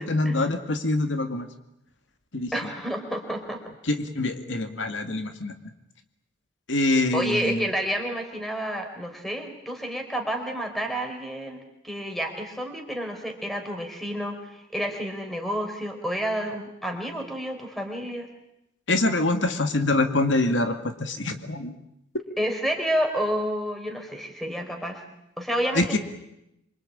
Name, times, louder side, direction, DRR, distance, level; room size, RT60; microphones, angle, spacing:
voice 1, 0.0-1.5 2.3-2.5 3.8-5.5 6.7-7.7 18.9-21.8 25.7-26.0, left 2 dB, 80° left, 7 dB, 2.2 m, -25 dB
voice 2, 2.5-3.6 7.1-11.6 11.8-18.3 22.4-25.0 25.4-26.0, equal, ahead, 3 dB, 4.4 m, -29 dB
27.0 x 24.5 x 8.8 m, 0.84 s
head